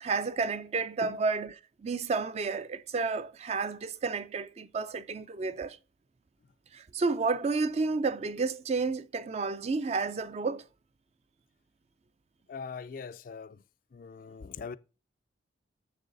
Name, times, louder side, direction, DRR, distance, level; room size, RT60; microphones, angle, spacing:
voice 1, 0.0-5.8 6.7-10.6, right 4 dB, 35° right, 0.4 m, -31 dB
voice 2, 12.5-13.6 13.9-14.8, left 5 dB, 50° left, 0.4 m, -41 dB
7.0 x 6.6 x 3.9 m
head